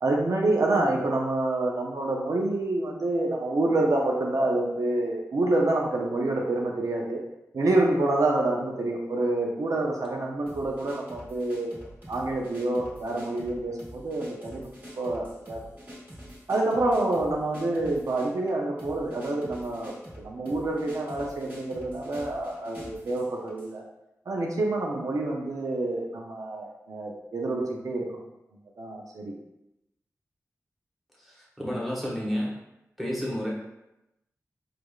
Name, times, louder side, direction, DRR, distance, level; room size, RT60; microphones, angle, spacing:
voice 1, 0.0-7.2 7.5-11.7 12.1-15.6 16.5-23.8 24.3-28.2 28.8-29.3, right 2 dB, 80° right, -1 dB, 0.5 m, -27 dB
sound 1, 10.5-23.7, equal, 35° right, 1.5 m, -46 dB
voice 2, 31.2-32.5 33.0-33.5, equal, ahead, -6 dB, 1.1 m, -31 dB
4.6 x 2.4 x 2.3 m, 0.90 s
wide cardioid pair, 75°, 6 cm